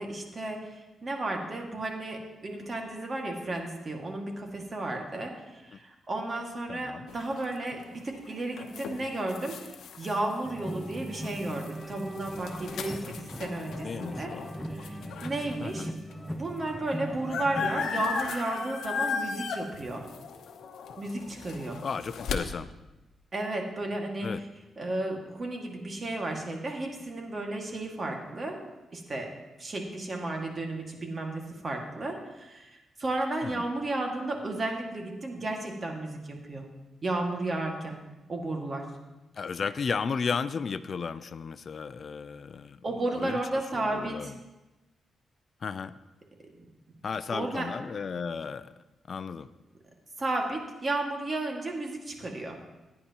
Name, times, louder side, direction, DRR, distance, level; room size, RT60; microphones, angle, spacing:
voice 1, 0.0-9.5 10.0-14.3 14.7-15.0 15.2-15.9 16.3-20.1 21.0-21.8 23.3-24.3 24.8-28.6 28.9-29.3 29.6-36.7 37.0-38.0 38.3-38.9 42.8-44.3 47.3-47.7 50.2-52.6, right 2 dB, 35° right, 2 dB, 1.9 m, -33 dB
voice 2, 6.7-7.1 13.8-14.5 15.6-15.9 21.8-22.7 24.2-24.4 33.4-33.6 39.3-42.8 43.1-43.4 43.7-44.4 45.6-45.9 47.0-48.7 49.1-49.5, left 5 dB, 50° left, 13 dB, 0.4 m, -34 dB
sound 1, 7.1-15.6 16.1-16.2 16.4-22.4, left 6 dB, 80° left, 0.9 m, -37 dB
sound 2, 10.4-17.9, equal, ahead, 0.8 m, -39 dB
16.0 x 9.7 x 2.9 m, 1.1 s
cardioid pair, 95°, 0 cm